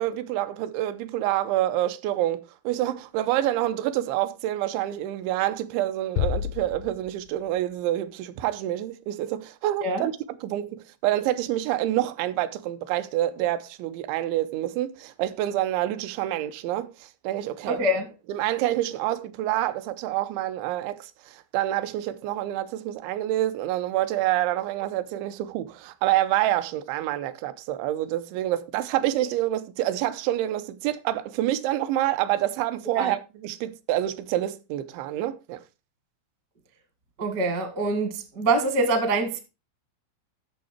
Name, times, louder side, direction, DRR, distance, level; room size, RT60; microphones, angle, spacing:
voice 1, 0.0-10.1 10.4-17.8 18.3-35.6, right 14 dB, 90° right, 3.1 m, -27 dB
sound 1, 6.2-7.7, left 10 dB, 80° left, 2.1 m, -30 dB
voice 2, 17.7-18.1 32.9-33.1 37.2-39.4, right 2 dB, 60° right, 1.0 m, -25 dB
11.5 x 6.6 x 4.3 m
omnidirectional pair, 5.1 m